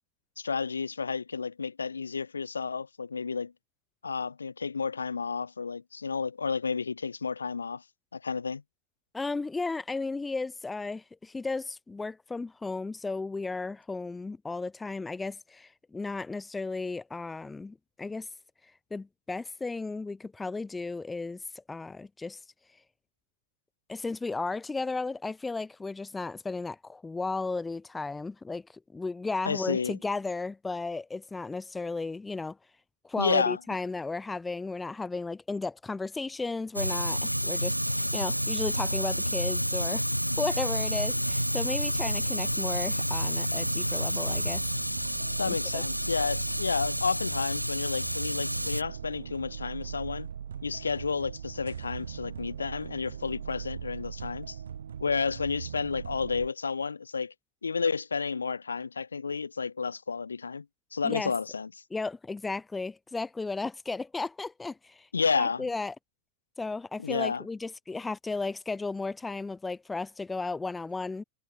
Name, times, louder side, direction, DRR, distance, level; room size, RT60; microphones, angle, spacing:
voice 1, 0.4-3.5 4.0-7.8 8.1-8.6 29.4-30.0 33.2-33.6 45.4-50.3 50.6-54.6 55.0-57.3 57.6-60.7 60.9-61.7 65.1-65.7 67.0-67.4, left 5 dB, 75° left, 0.7 m, -31 dB
voice 2, 9.1-18.3 18.9-21.4 21.7-22.4 23.9-28.6 28.9-32.6 33.0-40.0 40.4-44.7 45.5-45.8 61.0-61.3 61.9-65.1 65.3-65.9 66.6-71.2, left 3 dB, 10° left, 0.8 m, -34 dB
Fire, 36.7-48.8, equal, 90° right, 0.5 m, -30 dB
sound 1, 40.7-56.5, right 8 dB, 65° right, 1.7 m, -41 dB
figure-of-eight pair, 90°, 0 cm